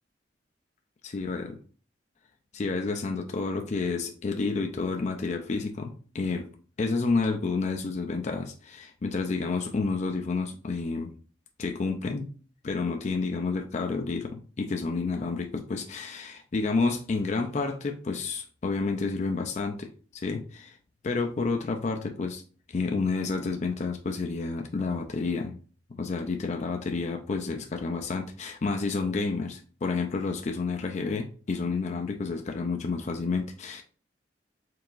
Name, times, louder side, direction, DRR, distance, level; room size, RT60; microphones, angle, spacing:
voice 1, 1.0-1.6 2.5-6.5 6.8-11.1 11.6-12.3 12.6-20.8 21.0-22.4 22.7-25.6 25.9-33.8, left 4 dB, 40° left, 4 dB, 0.4 m, -30 dB
4.7 x 3.4 x 2.4 m, 0.39 s
head